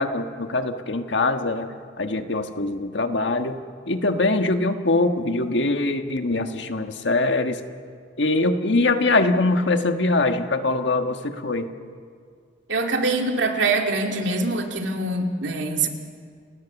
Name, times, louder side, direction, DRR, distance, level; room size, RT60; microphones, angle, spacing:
voice 1, 0.0-3.6 3.9-7.6 8.2-11.7, left 2 dB, 80° left, 7 dB, 1.5 m, -23 dB
voice 2, 12.7-15.9, right 3 dB, 80° right, 3 dB, 2.4 m, -24 dB
30.0 x 18.0 x 7.2 m, 2.1 s
head